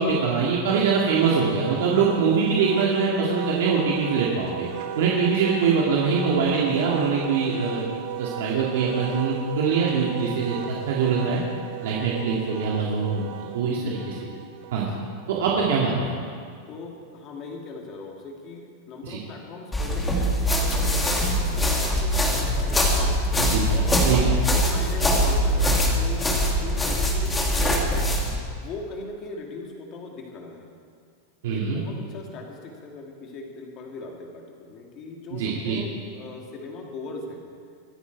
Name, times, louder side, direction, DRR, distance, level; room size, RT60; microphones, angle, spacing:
voice 1, 0.0-4.7 5.0-7.8 8.2-10.6 10.9-11.4 11.8-13.3 13.5-14.0 14.7-14.9 15.3-16.1 19.0-19.2 23.4-23.7 24.0-24.3 31.4-31.8 35.3-35.8, right 5 dB, 75° right, -4 dB, 2.3 m, -23 dB
Wind instrument woodwind instrument, 0.7-15.4, right 9 dB, 50° right, 1.0 m, -35 dB
voice 2, 16.7-22.9 23.7-24.1 24.5-28.0 28.5-30.7 31.5-37.4, left 3 dB, 35° left, 0 dB, 2.4 m, -39 dB
sound 1, 19.7-28.4, equal, 10° left, 1.7 m, -22 dB
24.0 x 9.3 x 4.7 m, 2.2 s
supercardioid pair, 155°, 0 cm